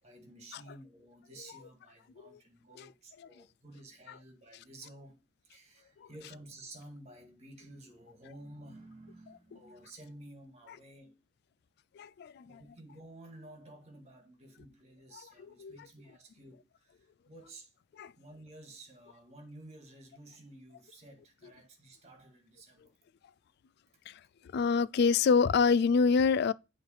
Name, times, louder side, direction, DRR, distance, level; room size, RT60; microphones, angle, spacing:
voice 1, 0.0-11.2 12.4-17.7 18.2-22.9, right 1 dB, 35° right, 1.9 m, -53 dB
voice 2, 12.0-12.6 15.2-15.8 18.0-18.1 24.1-24.2 24.5-26.5, left 5 dB, 60° left, 0.3 m, -27 dB
8.0 x 3.3 x 5.6 m
head